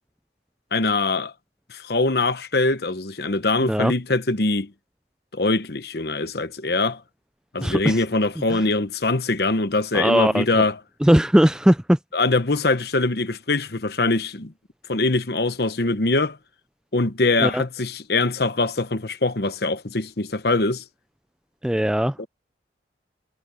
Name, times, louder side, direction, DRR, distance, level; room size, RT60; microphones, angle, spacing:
voice 1, 0.7-1.3 1.7-4.7 5.3-7.0 7.5-10.8 12.1-14.5 14.9-16.4 16.9-20.8 22.2-22.3, left 3 dB, 60° left, 1.0 m, -23 dB
voice 2, 7.6-8.0 8.5-8.6 9.9-10.7 11.0-12.0 17.4-17.6 21.6-22.3, equal, 5° right, 0.3 m, -19 dB
head